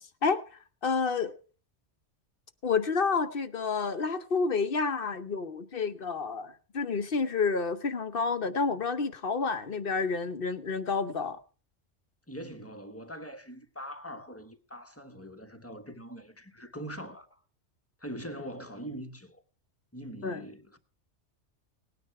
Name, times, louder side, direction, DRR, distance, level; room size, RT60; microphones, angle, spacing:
voice 1, 0.8-1.3 2.6-11.4 20.2-20.4, left 4 dB, 50° left, 1.1 m, -29 dB
voice 2, 12.3-17.4 18.0-19.4 19.9-20.8, equal, 10° left, 1.1 m, -42 dB
18.5 x 9.6 x 4.7 m
omnidirectional pair, 1.3 m